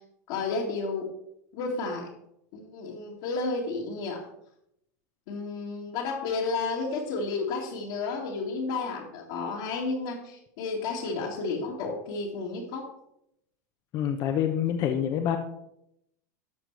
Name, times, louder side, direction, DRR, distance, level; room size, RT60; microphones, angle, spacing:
voice 1, 0.3-1.1 1.5-2.1 2.5-4.3 5.3-12.9, left 3 dB, 65° left, -4 dB, 2.2 m, -32 dB
voice 2, 13.9-15.4, left 9 dB, 45° left, 6 dB, 0.9 m, -26 dB
12.0 x 6.0 x 4.7 m, 0.79 s
hypercardioid pair, 110°, 10 cm